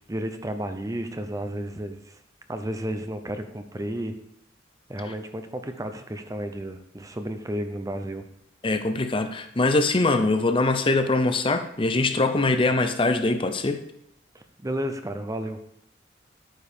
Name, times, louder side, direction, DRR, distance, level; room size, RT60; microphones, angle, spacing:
voice 1, 0.1-2.2 2.5-4.2 4.9-8.3 14.3-15.6, right 1 dB, 20° right, 8 dB, 0.7 m, -32 dB
voice 2, 8.6-13.8, left 2 dB, 30° left, 8 dB, 0.6 m, -23 dB
9.1 x 5.4 x 6.7 m, 0.75 s
head